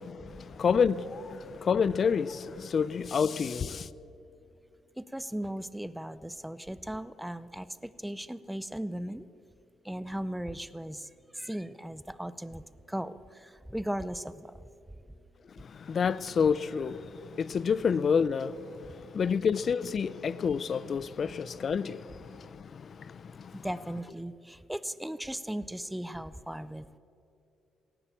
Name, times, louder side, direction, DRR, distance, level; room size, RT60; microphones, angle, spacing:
voice 1, 0.0-3.9 15.6-23.7, left 6 dB, 50° left, 0.5 m, -29 dB
voice 2, 5.0-9.2 9.8-11.1 11.3-14.5 23.6-27.0, right 1 dB, 5° right, 0.6 m, -37 dB
17.5 x 11.0 x 7.4 m
cardioid pair, 90°, 0 cm